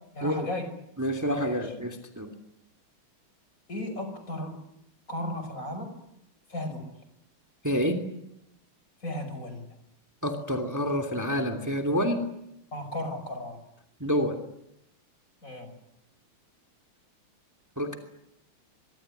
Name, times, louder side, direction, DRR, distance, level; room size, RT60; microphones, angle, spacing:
voice 1, 0.1-0.7 1.4-1.6 3.7-4.6 5.1-5.9 6.5-6.9 9.0-9.7 12.7-13.6 15.4-15.7, left 1 dB, 40° left, 9 dB, 6.0 m, -35 dB
voice 2, 1.0-2.4 7.6-8.0 10.2-12.3 14.0-14.4 17.8-18.0, equal, 10° right, 6 dB, 2.6 m, -28 dB
24.5 x 24.0 x 9.9 m, 0.81 s
omnidirectional pair, 2.3 m